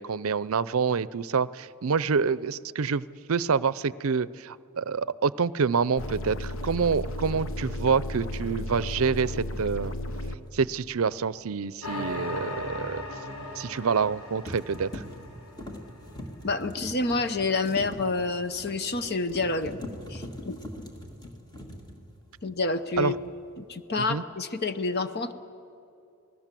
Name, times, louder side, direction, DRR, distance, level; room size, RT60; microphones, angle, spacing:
voice 1, 0.0-9.9 10.5-13.0 13.6-15.0 23.0-23.1 24.0-24.2, right 5 dB, 70° right, 19 dB, 0.5 m, -27 dB
sound 1, 6.0-10.4, left 1 dB, 60° left, 1.2 m, -34 dB
sound 2, 10.5-10.7 13.8-14.1 14.5-22.6 22.9-23.4, left 1 dB, 20° left, 2.2 m, -42 dB
sound 3, 11.8-16.3, left 2 dB, 80° left, 5.7 m, -38 dB
voice 2, 16.4-19.8 20.1-20.6 22.4-23.1 23.6-25.3, left 3 dB, 45° left, 10 dB, 0.8 m, -28 dB
27.5 x 20.0 x 7.6 m, 2.6 s
head